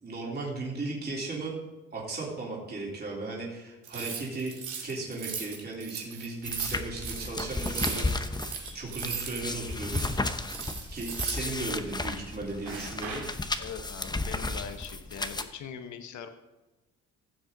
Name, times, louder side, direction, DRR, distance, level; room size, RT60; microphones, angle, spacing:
voice 1, 0.0-1.5 1.9-4.5 4.8-8.5 8.7-10.2 10.9-13.2, right 2 dB, 35° right, -5 dB, 3.6 m, -36 dB
sound 1, 3.8-9.4 9.7-11.8 12.6-13.4, right 7 dB, 80° right, 2.6 m, -37 dB
sound 2, 6.4-15.4, left 2 dB, 15° left, 0.8 m, -34 dB
voice 2, 13.6-16.3, left 7 dB, 70° left, 7 dB, 1.1 m, -41 dB
15.5 x 7.6 x 3.9 m, 1.1 s
cardioid pair, 90°, 30 cm